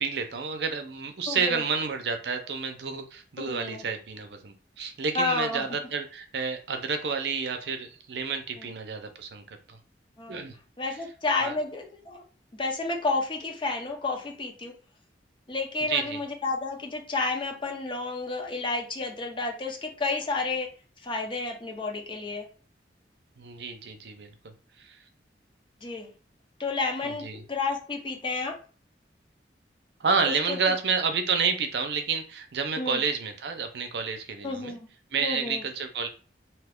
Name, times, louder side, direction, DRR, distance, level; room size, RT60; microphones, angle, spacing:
voice 1, 0.0-9.8 10.3-10.5 11.4-11.6 15.9-16.2 23.4-24.3 24.8-25.0 27.0-27.4 30.0-34.8 35.1-36.1, right 5 dB, 70° right, 6 dB, 0.5 m, -30 dB
voice 2, 1.3-1.6 3.5-3.8 5.1-5.6 8.6-8.7 10.2-10.4 10.8-12.2 12.6-14.7 15.5-20.7 21.0-22.5 25.8-26.1 26.6-28.5 30.2-30.7 32.8-33.0 34.4-34.9 35.2-35.6, left 3 dB, 30° left, 1 dB, 0.7 m, -31 dB
2.8 x 2.3 x 3.4 m, 0.38 s
head